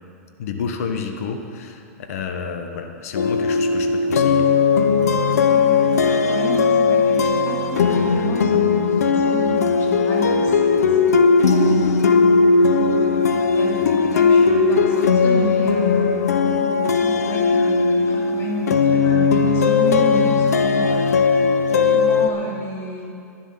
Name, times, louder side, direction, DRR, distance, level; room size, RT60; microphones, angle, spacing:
voice 1, 0.4-1.8 2.1-4.6, left 5 dB, 70° left, 5 dB, 1.2 m, -30 dB
sound 1, 3.1-22.3, left 5 dB, 85° left, 0.8 m, -18 dB
voice 2, 5.2-12.3 13.0-16.3 17.0-21.2 21.6-23.1, left 1 dB, 30° left, -2 dB, 2.8 m, -31 dB
11.5 x 11.5 x 5.8 m, 2.4 s
hypercardioid pair, 115°, 8 cm